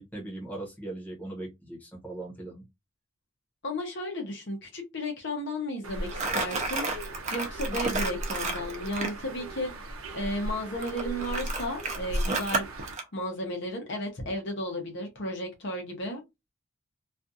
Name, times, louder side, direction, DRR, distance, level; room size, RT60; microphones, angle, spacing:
voice 1, 0.0-2.6, right 2 dB, 10° left, 0.9 m, -39 dB
voice 2, 3.6-6.8 7.3-9.7 10.1-12.7 13.1-16.2, left 1 dB, 55° left, 0.8 m, -33 dB
Bird, 5.8-12.9, equal, 85° right, 0.6 m, -37 dB
Crumpling crinkling, 6.1-9.2 10.8-13.0, right 3 dB, 35° right, 0.5 m, -31 dB
2.5 x 2.3 x 2.6 m
head